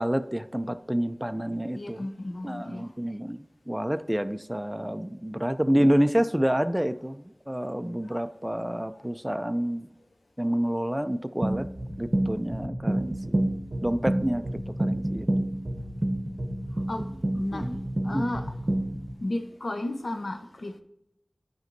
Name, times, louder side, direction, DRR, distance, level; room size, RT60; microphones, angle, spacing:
voice 1, 0.0-2.1 2.4-9.9 10.4-11.7 12.0-13.4 13.8-14.5 14.8-15.4 16.9-17.0 17.5-17.8 18.1-18.3, equal, 10° right, 0.4 m, -28 dB
voice 2, 1.7-2.9 8.0-8.3 8.9-9.0 16.9-17.1 17.3-17.7 18.0-18.5 19.2-20.8, left 1 dB, 85° left, 0.8 m, -33 dB
sound 1, 11.4-19.1, right 1 dB, 50° right, 0.8 m, -29 dB
11.0 x 5.2 x 2.6 m
wide cardioid pair, 55°, 0 cm